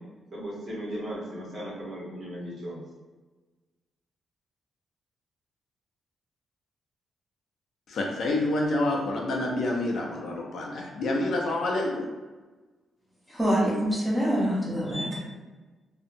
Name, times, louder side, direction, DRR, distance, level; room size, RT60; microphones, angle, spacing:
voice 1, 0.3-2.8, equal, 45° right, -6 dB, 0.9 m, -36 dB
voice 2, 7.9-12.1, left 2 dB, 60° left, -1 dB, 0.4 m, -28 dB
voice 3, 13.3-15.2, equal, 5° right, -7 dB, 0.8 m, -25 dB
2.6 x 2.0 x 2.5 m, 1.3 s
cardioid pair, 130°, 0 cm